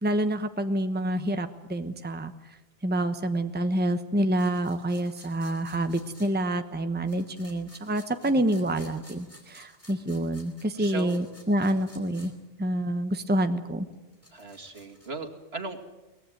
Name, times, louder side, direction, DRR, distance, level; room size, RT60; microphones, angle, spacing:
voice 1, 0.0-2.3 2.8-12.3 12.6-13.9, right 1 dB, 10° right, 8 dB, 1.1 m, -27 dB
sound 1, 4.4-6.3 7.1-12.3 12.6-12.7 13.9-15.1, equal, 15° left, 4.1 m, -54 dB
voice 2, 10.8-11.2 14.3-15.9, right 4 dB, 70° right, 4 dB, 2.5 m, -37 dB
23.5 x 18.5 x 9.3 m, 1.0 s
omnidirectional pair, 1.1 m